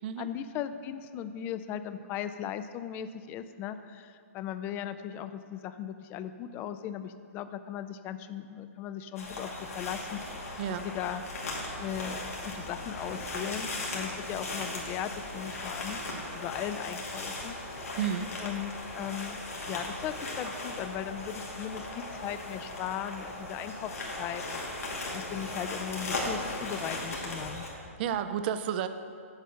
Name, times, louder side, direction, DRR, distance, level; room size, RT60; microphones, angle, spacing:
voice 1, 0.2-10.6 10.8-11.2 11.8-16.0 16.3-17.6 18.4-23.9 24.2-24.6 24.9-27.7, left 10 dB, 25° left, 11 dB, 0.4 m, -38 dB
sound 1, 9.2-27.7, left 2 dB, 90° left, 2.2 m, -37 dB
voice 2, 18.0-18.3 27.7-28.9, right 9 dB, 45° right, 10 dB, 0.5 m, -32 dB
8.0 x 6.2 x 6.7 m, 2.3 s
hypercardioid pair, 135°, 8 cm